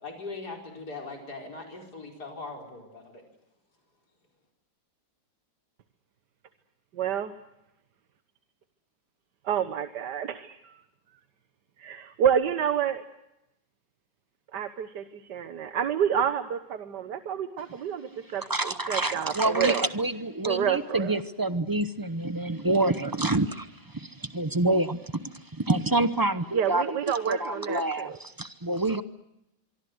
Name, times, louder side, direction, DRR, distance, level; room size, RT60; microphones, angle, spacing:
voice 1, 0.0-3.2, left 3 dB, 60° left, 2 dB, 5.2 m, -40 dB
voice 2, 6.9-7.3 9.5-10.8 11.8-13.0 14.5-19.9 20.4-21.2 26.5-28.2, right 8 dB, 65° right, 10 dB, 1.7 m, -29 dB
voice 3, 18.5-29.0, right 2 dB, 25° right, 12 dB, 0.5 m, -27 dB
25.0 x 24.0 x 7.9 m, 0.87 s
omnidirectional pair, 2.0 m